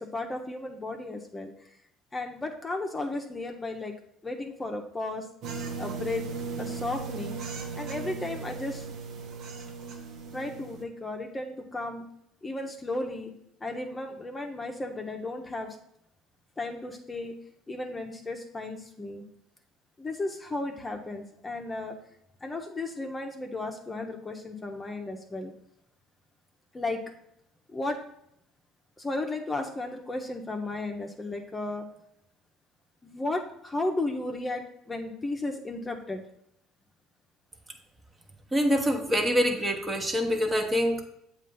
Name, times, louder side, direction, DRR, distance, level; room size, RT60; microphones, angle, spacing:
voice 1, 0.0-1.5 2.1-3.9 4.2-5.3 5.8-6.3 6.6-7.4 7.7-8.8 10.3-12.0 12.4-13.3 13.6-15.8 16.6-17.3 17.7-19.2 20.0-21.9 22.4-25.5 26.7-27.0 27.7-28.0 29.0-31.9 33.0-36.2, left 2 dB, 20° left, 2 dB, 0.8 m, -34 dB
sound 1, 5.4-10.8, right 5 dB, 60° right, 1.0 m, -37 dB
voice 2, 38.5-41.0, equal, 20° right, 4 dB, 1.1 m, -25 dB
7.3 x 2.5 x 5.4 m, 0.74 s
hypercardioid pair, 70°, 0 cm